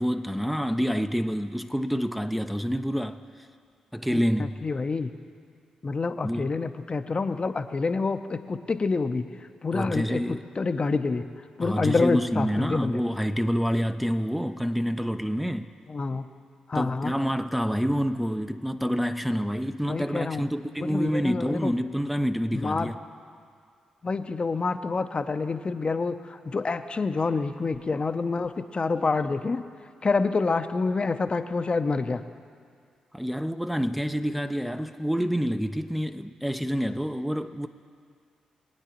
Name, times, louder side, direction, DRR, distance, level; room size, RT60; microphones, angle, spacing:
voice 1, 0.0-3.2 3.9-4.6 6.2-6.5 9.7-10.4 11.6-15.7 16.7-23.0 33.1-37.7, equal, 5° right, 0.5 m, -27 dB
voice 2, 4.1-5.1 5.8-9.2 9.6-10.2 10.6-11.2 11.6-13.0 15.9-16.2 16.7-17.1 19.9-20.4 20.8-21.7 22.5-22.9 24.0-29.6 30.0-32.2, left 4 dB, 40° left, 0.6 m, -27 dB
23.0 x 9.1 x 3.0 m
hypercardioid pair, 40°, 3 cm